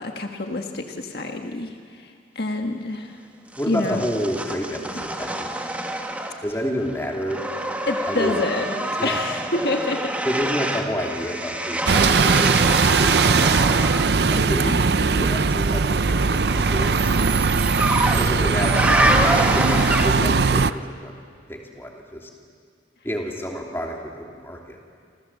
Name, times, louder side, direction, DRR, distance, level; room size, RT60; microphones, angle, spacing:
voice 1, 0.0-3.1 3.7-4.0 7.9-10.1 14.3-15.3, left 2 dB, 55° left, 3 dB, 1.7 m, -28 dB
sound 1, 3.5-6.6 6.9-14.2 15.7-20.4, right 1 dB, 10° right, 1.5 m, -26 dB
voice 2, 3.6-5.5 6.4-7.4 8.1-8.4 9.0-9.2 10.2-13.7 14.2-14.8 15.2-17.4 18.1-19.2 19.5-21.1 21.5-22.3 23.0-24.8, equal, 10° left, 0 dB, 3.2 m, -29 dB
Bus, 11.9-20.7, right 4 dB, 60° right, 0.6 m, -19 dB
29.0 x 27.0 x 7.4 m, 2.2 s
head